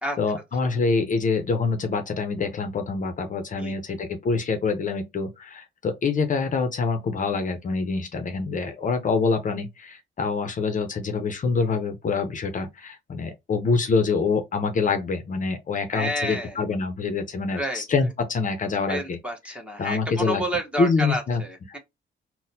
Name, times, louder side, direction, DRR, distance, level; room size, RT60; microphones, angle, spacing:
voice 1, 0.2-19.2 19.8-20.4 20.8-21.4, left 4 dB, 40° left, 0.6 m, -25 dB
voice 2, 3.6-4.0 15.9-16.6 17.5-17.8 18.9-21.8, equal, 5° right, 1.1 m, -30 dB
3.9 x 2.1 x 2.7 m
cardioid pair, 90°, 20 cm